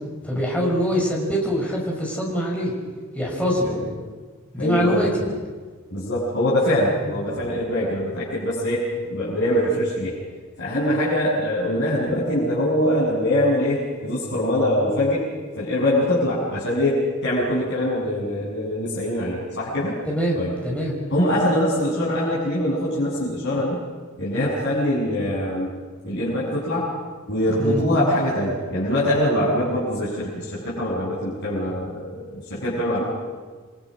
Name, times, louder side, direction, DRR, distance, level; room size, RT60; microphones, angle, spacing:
voice 1, 0.2-2.7 3.1-3.8 4.5-5.2 7.0-7.5 20.1-21.0 27.6-27.8, equal, 5° left, -3 dB, 6.2 m, -24 dB
voice 2, 4.6-5.1 5.9-8.8 9.1-10.2 10.6-15.2 15.6-20.0 20.4-20.5 21.1-23.8 24.2-25.7 26.0-26.9 27.3-32.0 32.3-33.0, left 1 dB, 55° left, -8 dB, 7.5 m, -23 dB
29.0 x 24.5 x 6.5 m, 1.4 s
head